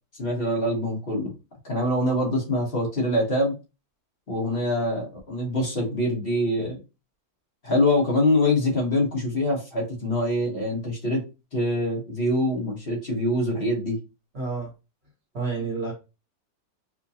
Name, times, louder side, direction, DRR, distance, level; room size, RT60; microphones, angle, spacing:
voice 1, 0.2-1.3 1.6-3.5 4.3-6.8 7.6-11.2 11.5-14.0, left 1 dB, 40° left, -2 dB, 1.2 m, -24 dB
voice 2, 14.3-14.7 15.3-15.9, right 4 dB, 45° right, -1 dB, 1.1 m, -29 dB
4.7 x 2.2 x 2.7 m, 0.29 s
omnidirectional pair, 1.6 m